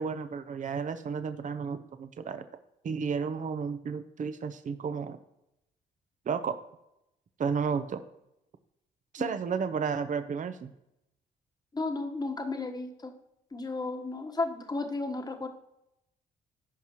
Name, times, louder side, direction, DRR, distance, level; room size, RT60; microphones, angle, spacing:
voice 1, 0.0-2.4 2.8-5.2 6.3-6.6 7.4-8.0 9.1-10.7, right 6 dB, 45° right, 10 dB, 0.7 m, -32 dB
voice 2, 11.7-13.1 13.5-15.5, left 3 dB, 25° left, 5 dB, 1.3 m, -33 dB
14.5 x 5.5 x 3.1 m, 0.86 s
supercardioid pair, 70°, 17 cm